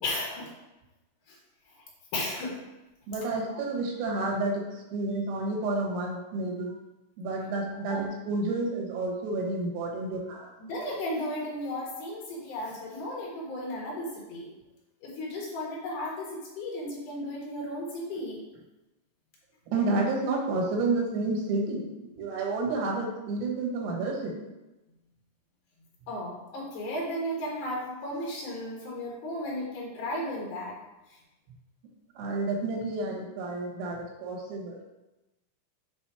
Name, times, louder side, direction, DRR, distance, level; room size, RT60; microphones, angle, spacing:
voice 1, 0.0-0.5 2.1-2.6 7.9-8.0 10.7-14.5 15.0-16.3 16.6-18.4 26.1-30.8, left 1 dB, 80° left, -3 dB, 1.8 m, -34 dB
voice 2, 3.1-6.8 7.2-10.5 19.7-24.4 32.2-34.8, right 2 dB, 85° right, -1 dB, 3.9 m, -30 dB
8.1 x 3.8 x 4.7 m, 1.0 s
omnidirectional pair, 5.9 m